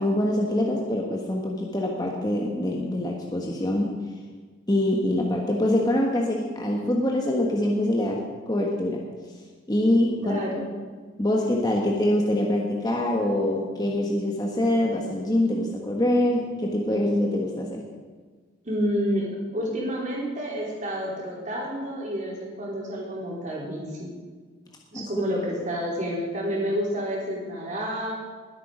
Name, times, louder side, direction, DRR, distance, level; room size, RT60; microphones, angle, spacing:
voice 1, 0.0-4.0 4.7-9.0 9.7-10.6 11.2-17.8 24.9-25.3, left 1 dB, 20° left, -1 dB, 1.2 m, -24 dB
voice 2, 10.2-10.7 18.6-19.3 19.5-24.1 24.9-28.1, equal, 40° right, -4 dB, 3.8 m, -29 dB
20.0 x 8.4 x 5.0 m, 1.5 s
head